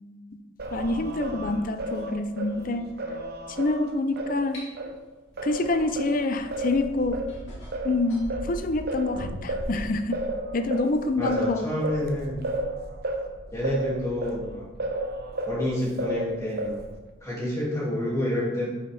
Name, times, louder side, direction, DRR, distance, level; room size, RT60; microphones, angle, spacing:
Singing, 0.6-5.0 5.4-15.6 16.0-17.0, right 1 dB, 50° right, 0.8 m, -33 dB
voice 1, 0.7-2.8 3.6-4.6 5.4-7.2 7.8-10.2 10.5-11.7, left 2 dB, 40° left, 9 dB, 0.5 m, -26 dB
sound 1, 4.5-4.7 6.6-6.7 7.3-8.3 9.1-10.4, equal, 70° left, 2.5 m, -39 dB
voice 2, 11.2-12.4 13.5-14.7 15.5-16.8 17.2-18.7, left 1 dB, 15° left, -6 dB, 2.4 m, -28 dB
8.7 x 6.6 x 3.4 m, 1.2 s
head